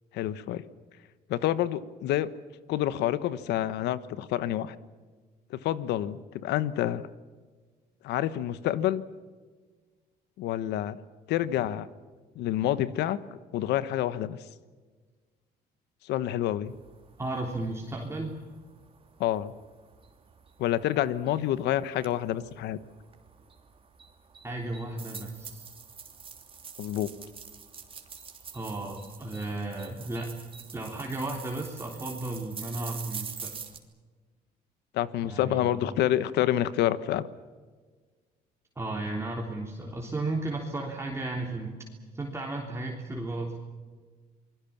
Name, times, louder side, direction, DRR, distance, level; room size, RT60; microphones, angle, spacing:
voice 1, 0.1-0.6 1.3-2.3 2.7-4.7 5.5-7.0 8.0-9.0 10.4-11.0 11.3-11.9 12.3-13.2 13.5-14.4 16.0-16.7 19.2-19.5 20.6-22.8 26.8-27.1 34.9-37.3, left 12 dB, 80° left, 15 dB, 1.2 m, -28 dB
sound 1, 16.7-33.8, right 6 dB, 30° right, 3.1 m, -46 dB
voice 2, 17.2-18.4 24.4-25.7 28.5-30.4 30.7-33.5 35.2-35.7 38.8-41.7 42.1-43.6, right 2 dB, 15° right, -1 dB, 3.4 m, -34 dB
28.0 x 21.0 x 7.3 m, 1.4 s
cardioid pair, 110°, 17 cm